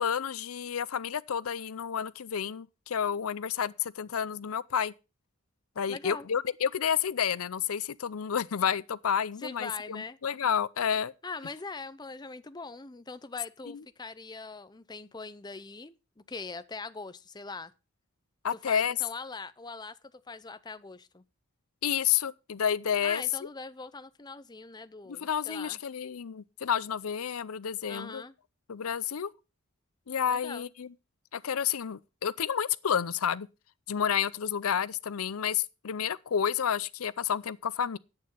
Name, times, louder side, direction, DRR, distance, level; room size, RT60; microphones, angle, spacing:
voice 1, 0.0-4.9 5.8-11.1 18.4-18.9 21.8-23.2 25.2-28.2 28.7-29.3 30.1-30.9 31.3-33.5 33.9-38.0, left 8 dB, 85° left, 0.6 m, -30 dB
voice 2, 5.9-6.3 9.4-10.2 11.2-17.7 18.5-21.2 23.0-25.8 27.9-28.3 30.3-30.7, left 4 dB, 20° left, 0.6 m, -42 dB
10.5 x 8.7 x 5.5 m
head